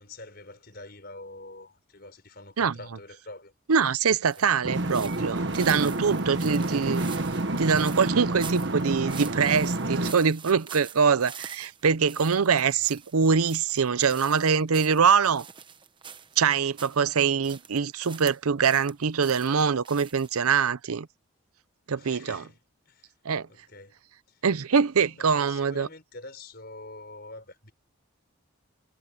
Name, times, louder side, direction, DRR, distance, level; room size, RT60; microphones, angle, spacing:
voice 1, 0.0-3.5 4.4-4.5 12.8-12.9 21.9-22.6 22.9-23.1 23.5-23.9 24.3-24.4 25.0-27.7, left 2 dB, 45° left, 5.4 m, -46 dB
voice 2, 3.7-7.0 7.6-15.4 16.4-21.1 21.9-22.4 23.2-23.5 24.4-25.9, right 6 dB, 85° right, 0.6 m, -24 dB
sound 1, 4.2-17.0 17.4-18.9 19.2-20.4, right 7 dB, 20° right, 0.9 m, -45 dB
sound 2, 4.6-10.1, right 2 dB, 55° right, 1.3 m, -28 dB
head